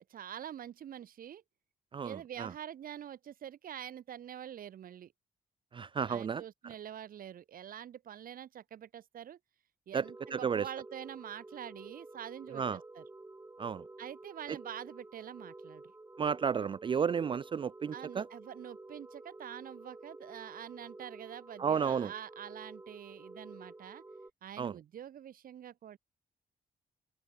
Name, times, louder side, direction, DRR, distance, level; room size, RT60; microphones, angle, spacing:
voice 1, 0.0-1.4 2.0-5.1 6.1-9.4 9.9-13.0 14.0-15.9 17.9-24.0 24.4-26.0, right 10 dB, 65° right, 2.7 m, -46 dB
voice 2, 1.9-2.5 5.7-6.7 9.9-10.1 10.3-10.7 12.5-12.8 13.6-13.9 14.5-14.6 16.2-18.3 21.6-22.1 24.6-24.8, right 6 dB, 35° right, 0.4 m, -33 dB
sound 1, 10.0-24.3, right 2 dB, 15° right, 2.2 m, -51 dB
cardioid pair, 115°, 16 cm